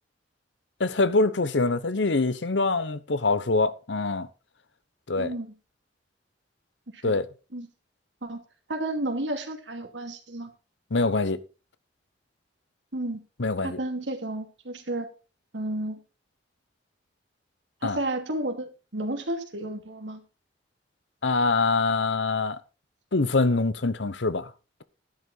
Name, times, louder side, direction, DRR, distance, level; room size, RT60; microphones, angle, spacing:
voice 1, 0.8-4.3 5.1-5.3 7.0-7.3 10.9-11.4 13.4-13.8 17.8-18.0 21.2-22.6 23.1-24.5, left 3 dB, 80° left, 1.0 m, -24 dB
voice 2, 5.2-5.5 6.9-7.1 7.5-7.7 8.2-8.4 8.7-10.5 12.9-13.2 13.6-15.1 15.5-16.0 17.8-20.2, right 1 dB, 85° right, 2.6 m, -32 dB
11.5 x 11.0 x 4.0 m
head